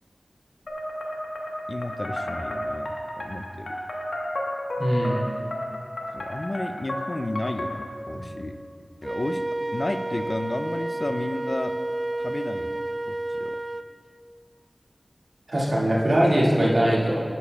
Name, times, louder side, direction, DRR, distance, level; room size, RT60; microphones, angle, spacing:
sound 1, 0.7-8.1, left 1 dB, 90° left, 1.2 m, -32 dB
voice 1, 1.7-3.8 6.1-8.6 9.0-9.4 9.7-11.8 12.2-13.6, left 2 dB, 50° left, 9 dB, 0.4 m, -32 dB
voice 2, 4.8-5.2 15.5-17.2, equal, 80° right, -6 dB, 1.9 m, -21 dB
Wind instrument woodwind instrument, 9.0-13.9, right 1 dB, 40° right, 0.3 m, -30 dB
11.0 x 10.5 x 2.3 m, 2.4 s
wide cardioid pair, 45°, 0 cm